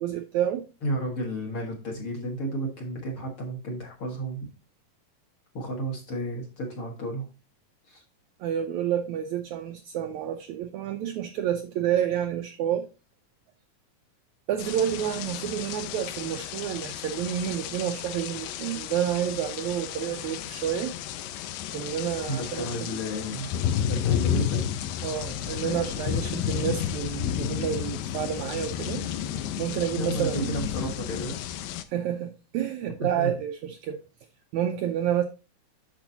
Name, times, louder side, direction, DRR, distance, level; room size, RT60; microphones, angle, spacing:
voice 1, 0.0-0.7 8.4-12.9 14.5-20.9 21.7-22.9 25.0-29.1 29.6-30.6 31.9-34.0 34.5-35.2, right 10 dB, 90° right, 1.6 m, -29 dB
voice 2, 0.8-4.5 5.5-7.3 7.8-8.0 22.3-23.5 23.8-24.7 30.0-31.5 33.0-33.4, right 1 dB, 50° left, 1.9 m, -32 dB
sound 1, 14.6-31.8, left 9 dB, 90° left, 2.5 m, -32 dB
8.8 x 6.2 x 2.7 m
omnidirectional pair, 4.0 m